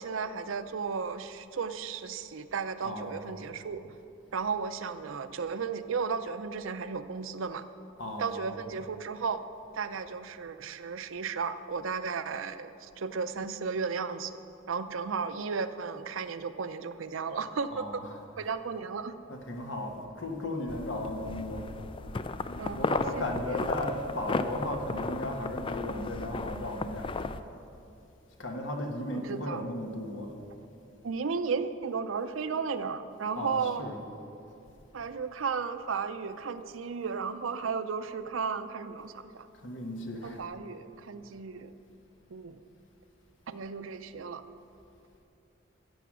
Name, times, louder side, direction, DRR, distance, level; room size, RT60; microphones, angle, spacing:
voice 1, 0.0-4.0 4.3-7.6 8.2-9.4 9.7-14.3 14.7-18.0 18.4-19.1 22.6-23.5 29.1-29.7 31.0-33.9 34.9-39.5 40.2-41.7 42.3-42.6 43.5-44.4, right 5 dB, 80° right, 0.6 m, -34 dB
voice 2, 2.8-3.5 8.0-8.8 17.7-18.5 19.3-21.7 22.8-27.3 28.4-30.4 33.3-34.1 39.6-40.4, left 1 dB, 65° left, 1.4 m, -36 dB
sound 1, 20.7-27.4, left 3 dB, 25° left, 0.3 m, -34 dB
15.0 x 7.0 x 6.1 m
head